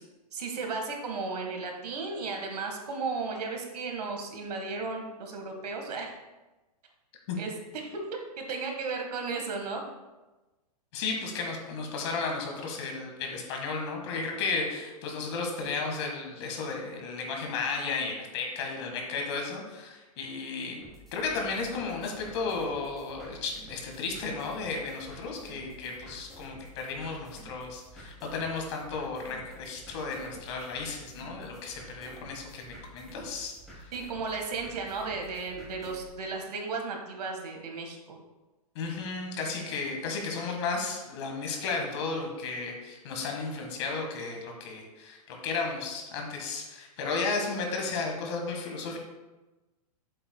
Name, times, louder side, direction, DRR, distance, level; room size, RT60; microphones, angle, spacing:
voice 1, 0.3-6.1 7.4-7.5 7.8-9.8 33.9-38.2, right 4 dB, 75° right, 2 dB, 1.7 m, -35 dB
voice 2, 10.9-20.8 21.1-33.9 38.8-49.0, left 4 dB, 45° left, 2 dB, 1.8 m, -34 dB
sound 1, 20.8-36.1, right 1 dB, ahead, 2.5 m, -50 dB
7.8 x 7.7 x 2.3 m, 1.1 s
hypercardioid pair, 155°, 20 cm